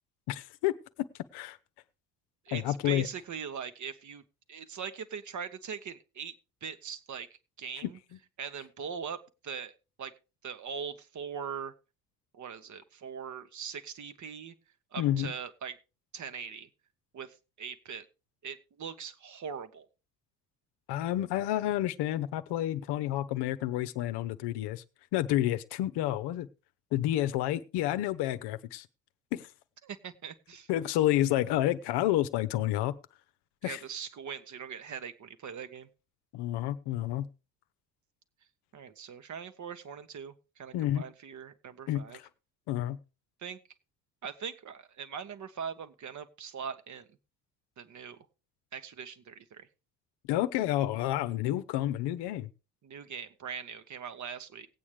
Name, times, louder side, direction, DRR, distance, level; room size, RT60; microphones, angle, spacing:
voice 1, 0.3-0.7 1.3-1.6 2.5-3.1 7.8-7.9 15.0-15.3 20.9-24.8 25.1-26.5 26.9-28.9 29.3-29.5 30.7-33.0 33.6-33.8 36.3-37.3 40.7-41.0 41.9-42.3 42.7-43.0 50.3-52.5, left 13 dB, 55° left, 0.9 m, -29 dB
voice 2, 2.4-4.2 4.5-6.3 6.6-8.0 8.4-9.7 10.0-10.1 10.4-11.7 12.3-14.5 14.9-15.8 16.1-16.7 17.1-18.0 18.4-19.9 29.8-30.7 33.6-35.9 38.7-42.2 43.4-43.6 44.2-47.1 47.8-48.3 48.7-49.7 52.8-54.7, right 7 dB, 35° right, 1.2 m, -41 dB
19.0 x 8.5 x 3.3 m
figure-of-eight pair, 60°, 48 cm